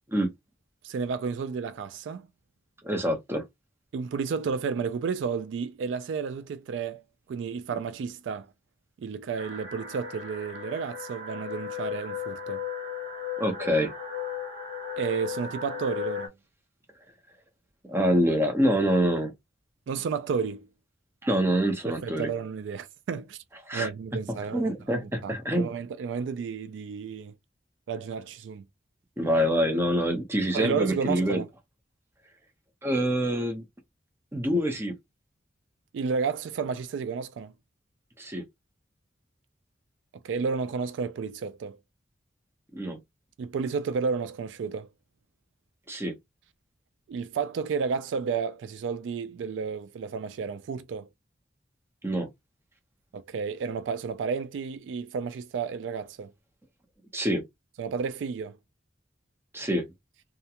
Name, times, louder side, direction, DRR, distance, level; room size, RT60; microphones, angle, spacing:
voice 1, 0.8-2.3 3.9-7.0 7.3-8.5 9.0-12.6 15.0-16.3 19.9-20.7 21.9-23.4 23.7-27.3 27.9-28.6 30.5-31.5 35.9-37.5 40.2-41.8 43.4-44.9 47.1-51.1 53.1-56.3 57.8-58.6, right 5 dB, 75° right, 0.3 m, -32 dB
voice 2, 2.8-3.4 13.4-13.9 17.9-19.3 21.2-22.3 23.7-23.9 24.3-25.7 29.2-31.4 32.8-33.6 34.3-34.9 38.2-38.4 42.7-43.0 45.9-46.1 52.0-52.3 57.1-57.4 59.5-59.9, equal, 15° right, 0.7 m, -26 dB
sound 1, 9.4-16.3, left 7 dB, 50° right, 0.9 m, -36 dB
2.4 x 2.1 x 2.8 m
head